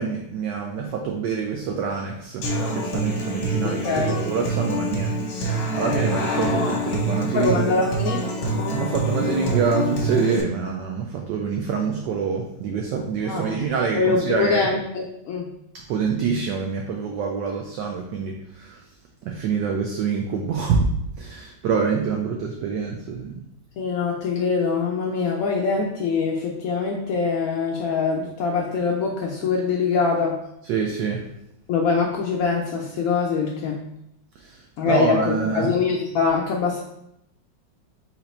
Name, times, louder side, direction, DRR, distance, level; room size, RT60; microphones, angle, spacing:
voice 1, 0.0-2.5 2.7-5.1 5.4-7.6 8.7-14.7 15.9-18.8 19.2-20.9 21.2-23.4 30.6-31.3 34.4-35.7, right 5 dB, 75° right, 2 dB, 1.1 m, -26 dB
Human voice / Acoustic guitar, 2.4-10.4, right 1 dB, 60° left, 1.3 m, -26 dB
voice 2, 3.6-4.2 7.3-8.2 13.3-13.6 13.9-15.5 23.8-30.4 31.7-33.8 34.8-36.8, left 5 dB, 80° left, -1 dB, 0.7 m, -23 dB
4.1 x 2.9 x 4.2 m, 0.79 s
omnidirectional pair, 2.1 m